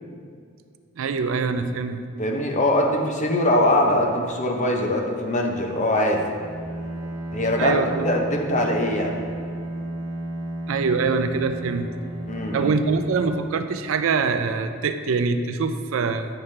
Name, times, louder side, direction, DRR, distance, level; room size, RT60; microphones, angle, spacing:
voice 1, 1.0-2.0 7.6-8.1 10.7-11.9 12.5-16.3, right 4 dB, 65° right, 9 dB, 0.4 m, -24 dB
voice 2, 2.2-6.3 7.3-9.2 12.3-12.7, left 1 dB, 35° left, 2 dB, 0.7 m, -22 dB
Bowed string instrument, 6.3-14.3, right 1 dB, 90° right, 1.1 m, -33 dB
8.9 x 5.7 x 3.2 m, 2.2 s
head